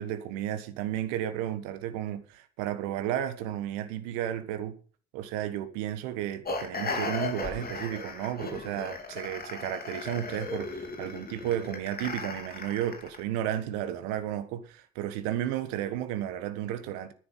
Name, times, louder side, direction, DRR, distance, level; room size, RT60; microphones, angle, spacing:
voice 1, 0.0-4.8 5.1-17.1, right 11 dB, 60° right, 1.5 m, -33 dB
sound 1, 6.4-13.2, left 3 dB, 25° left, 3.1 m, -36 dB
11.0 x 10.0 x 5.7 m
figure-of-eight pair, 60°, 34 cm